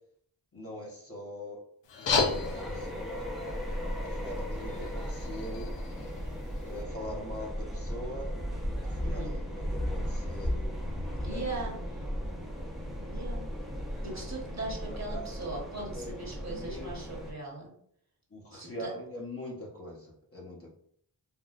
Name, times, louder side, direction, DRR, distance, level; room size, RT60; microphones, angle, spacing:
voice 1, 0.5-1.6 2.0-3.5 4.0-5.7 6.6-8.3 8.7-10.8 11.3-12.5 15.1-15.3 15.8-16.2 16.4-17.2 18.3-20.7, equal, 35° left, -3 dB, 0.9 m, -43 dB
sound 1, 1.8-6.8, left 4 dB, 90° left, 0.6 m, -35 dB
sound 2, 2.1-17.3, equal, ahead, 0.7 m, -36 dB
voice 2, 9.0-9.3 11.2-12.0 13.1-13.5 14.0-17.7 18.5-18.9, right 2 dB, 40° right, -2 dB, 1.1 m, -39 dB
3.5 x 2.3 x 2.4 m, 0.65 s
wide cardioid pair, 60°, 42 cm